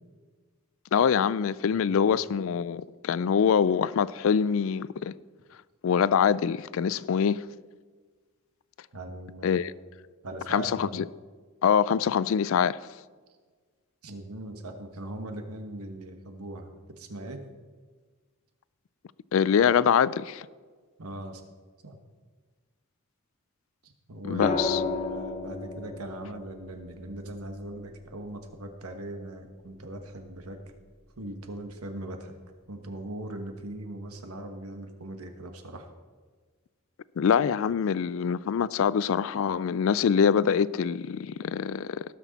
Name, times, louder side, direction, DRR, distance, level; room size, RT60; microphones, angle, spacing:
voice 1, 0.9-5.1 5.8-7.4 9.4-9.7 10.5-11.1 11.6-12.8 19.3-20.5 24.2-24.8 37.2-42.1, left 7 dB, 65° left, 0.3 m, -24 dB
voice 2, 1.7-2.2 8.9-9.6 10.2-10.9 14.0-17.4 21.0-21.4 21.8-22.0 23.8-30.6 31.2-32.3 32.7-35.9, right 1 dB, 85° right, 1.3 m, -40 dB
sound 1, 24.4-28.5 30.2-30.6, left 3 dB, 30° left, 1.0 m, -34 dB
17.5 x 6.3 x 4.1 m
head